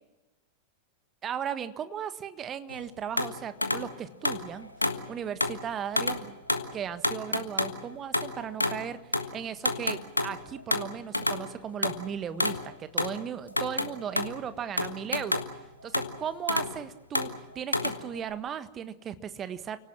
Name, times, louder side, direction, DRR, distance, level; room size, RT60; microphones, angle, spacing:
voice 1, 1.2-4.7 5.1-6.3 6.7-15.4 15.8-17.3 17.5-19.8, right 8 dB, 25° right, 12 dB, 1.5 m, -36 dB
sound 1, 2.7-2.8 3.2-3.9 4.2-5.0 5.4-5.6 6.0-6.2 6.5-6.7 7.0-8.8 9.1-9.3 9.6-11.5 11.8-13.2 13.5-14.4 14.8-15.7 15.9-16.8 17.1-18.3, left 2 dB, 85° left, 1.5 m, -29 dB
29.5 x 18.0 x 7.4 m, 1.1 s
figure-of-eight pair, 90°, 0 cm